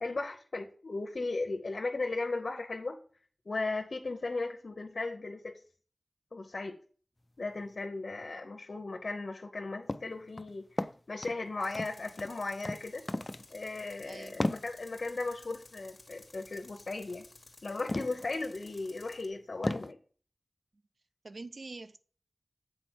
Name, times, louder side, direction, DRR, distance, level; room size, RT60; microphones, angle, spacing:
voice 1, 0.0-3.0 3.5-5.6 6.3-6.8 7.4-13.0 13.5-17.2 17.6-20.0, left 3 dB, 80° left, 0.8 m, -36 dB
sound 1, 9.9-10.1 10.4-11.4 11.7-12.3 12.6-12.8 13.1-13.5 13.8-13.9 14.4-14.7 17.0-17.2 17.9-18.3 18.8-18.9 19.6-19.9, left 1 dB, 35° left, 0.4 m, -34 dB
Tools, 11.6-19.3, left 2 dB, 65° left, 1.1 m, -56 dB
voice 2, 21.2-22.0, right 3 dB, 90° right, 0.5 m, -44 dB
7.7 x 4.2 x 4.4 m
wide cardioid pair, 60°, 0 cm